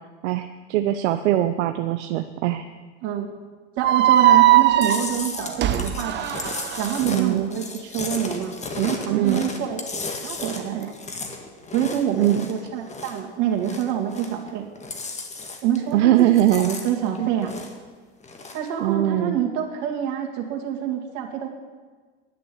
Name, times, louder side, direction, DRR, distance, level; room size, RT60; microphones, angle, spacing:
voice 1, 0.2-2.6 7.1-7.4 9.1-9.4 12.1-12.4 15.9-16.8 17.2-17.3 18.8-19.4, right 13 dB, 80° right, 8 dB, 0.7 m, -21 dB
sound 1, 3.8-7.0, right 13 dB, 30° right, 0.7 m, -19 dB
voice 2, 3.8-6.3 6.8-9.8 10.2-11.0 11.7-14.7 15.6-17.5 18.5-21.5, right 9 dB, 60° right, 1 dB, 2.3 m, -26 dB
Chewing mastication, 4.8-13.3 13.5-14.5 14.7-15.9 16.2-17.9 18.2-18.7, left 3 dB, 20° left, 1.6 m, -34 dB
11.0 x 6.7 x 8.6 m, 1.5 s
supercardioid pair, 110°, 34 cm